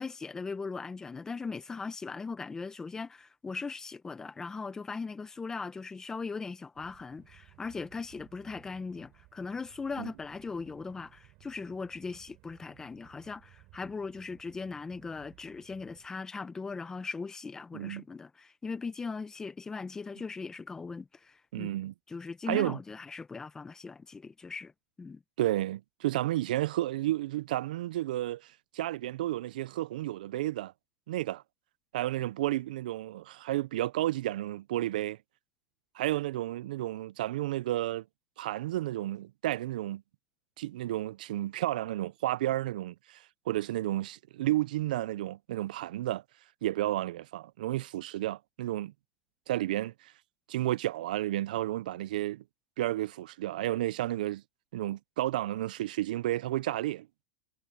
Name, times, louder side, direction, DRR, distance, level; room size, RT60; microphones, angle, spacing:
voice 1, 0.0-21.7 22.1-24.7 25.0-25.2, left 4 dB, 15° left, 1.2 m, -39 dB
sound 1, 6.7-16.1, right 22 dB, 50° right, 3.7 m, -60 dB
voice 2, 17.7-18.0 21.5-21.9 22.5-22.8 25.4-30.7 31.1-31.4 31.9-35.2 35.9-38.0 38.4-40.0 40.6-46.2 46.6-48.9 49.5-50.1 50.5-52.4 52.8-54.4 54.7-57.1, right 15 dB, 80° right, 0.4 m, -32 dB
supercardioid pair, 140°, 4 cm